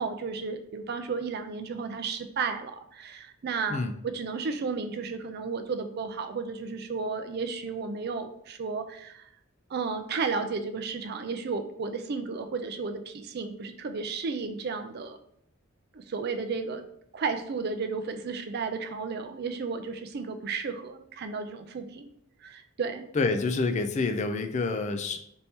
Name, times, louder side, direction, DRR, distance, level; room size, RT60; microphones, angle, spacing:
voice 1, 0.0-9.3 9.7-15.2 15.9-16.8 17.1-22.1 22.4-23.0, right 4 dB, 50° right, 8 dB, 0.4 m, -33 dB
voice 2, 23.1-25.2, left 3 dB, 35° left, 8 dB, 0.3 m, -27 dB
4.2 x 2.8 x 3.4 m, 0.71 s
head